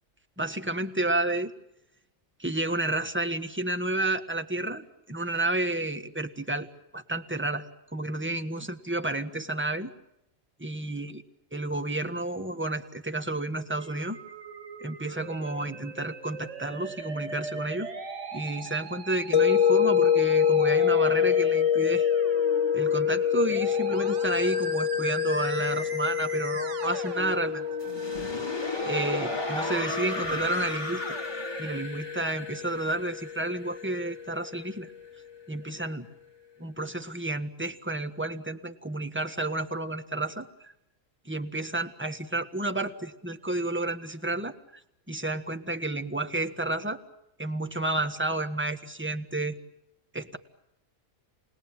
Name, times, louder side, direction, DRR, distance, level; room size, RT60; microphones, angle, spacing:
voice 1, 0.4-1.5 2.4-6.7 6.9-7.6 7.9-9.9 10.6-11.2 11.5-14.2 14.8-17.9 18.3-22.1 22.7-27.7 28.8-31.2 31.6-34.9 35.5-36.1 36.6-40.7 41.2-44.8 45.1-47.0 47.4-49.5 50.1-50.4, right 2 dB, 10° right, 7 dB, 1.5 m, -31 dB
Musical instrument, 13.8-31.8, right 4 dB, 60° right, 1.7 m, -39 dB
sound 1, 19.3-34.3, left 8 dB, 60° left, 1.6 m, -27 dB
sound 2, 27.8-34.7, left 2 dB, 20° left, 1.8 m, -36 dB
28.0 x 21.0 x 8.9 m, 0.85 s
omnidirectional pair, 1.4 m